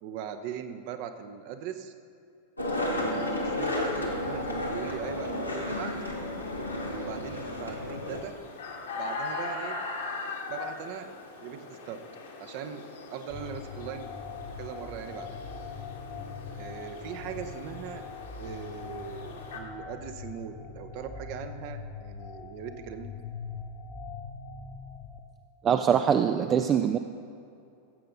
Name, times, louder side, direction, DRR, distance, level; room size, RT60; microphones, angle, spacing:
voice 1, 0.0-1.9 2.7-5.9 6.9-8.4 9.0-9.8 10.5-11.1 11.4-12.0 12.4-12.8 13.1-14.1 14.6-15.3 16.6-18.0 18.4-23.1, right 8 dB, 45° right, 8 dB, 0.8 m, -40 dB
Skateboard, 2.6-8.2, left 1 dB, 85° left, 1.3 m, -32 dB
sound 1, 3.0-19.6, left 3 dB, 65° left, 1.6 m, -42 dB
sound 2, 13.3-25.2, left 5 dB, 25° left, 0.9 m, -42 dB
voice 2, 25.6-27.0, right 8 dB, 25° right, 7 dB, 0.4 m, -23 dB
15.0 x 7.8 x 3.8 m, 2.5 s
figure-of-eight pair, 90°, 0 cm